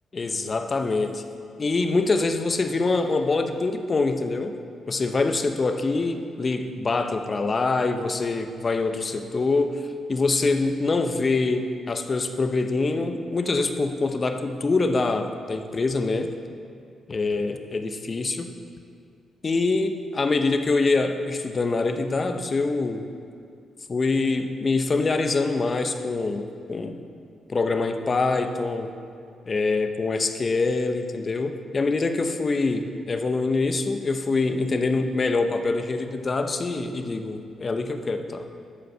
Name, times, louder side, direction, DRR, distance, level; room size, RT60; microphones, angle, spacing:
voice 1, 0.1-1.1 1.6-4.6 4.9-16.3 17.1-18.5 19.4-23.0 23.9-27.0 27.5-28.9 29.5-38.5, left 3 dB, 40° left, 7 dB, 0.8 m, -25 dB
13.0 x 5.2 x 5.6 m, 2.4 s
supercardioid pair, 60°, 0 cm